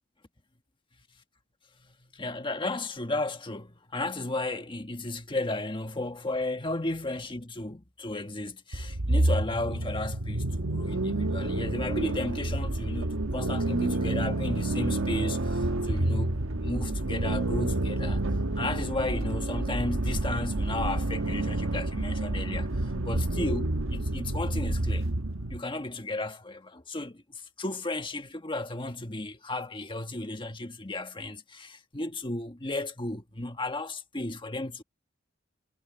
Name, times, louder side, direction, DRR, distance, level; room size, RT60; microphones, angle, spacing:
voice 1, 1.8-18.2 18.6-25.1 25.5-34.8, left 2 dB, 25° left, 1.5 m, -34 dB
sound 1, 8.7-25.6, right 2 dB, 80° right, 1.2 m, -29 dB
head